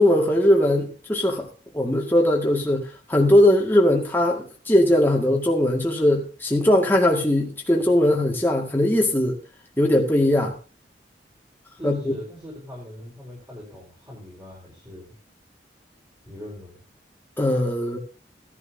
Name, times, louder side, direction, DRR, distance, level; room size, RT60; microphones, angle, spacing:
voice 1, 0.0-1.5 1.7-9.4 9.8-10.5 11.8-12.2 17.4-18.0, left 1 dB, 10° left, -1 dB, 1.9 m, -20 dB
voice 2, 11.8-15.1 16.2-16.8, left 1 dB, 20° right, -5 dB, 4.3 m, -40 dB
16.5 x 11.0 x 2.7 m, 0.34 s
head